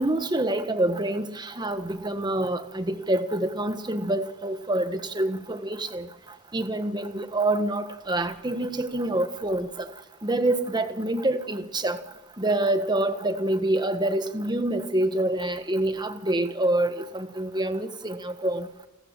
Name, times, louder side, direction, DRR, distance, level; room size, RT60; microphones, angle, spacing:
voice 1, 0.0-6.1 6.5-9.9 10.2-12.0 12.4-18.7, right 1 dB, 20° right, 1.5 m, -26 dB
30.0 x 14.0 x 7.5 m
head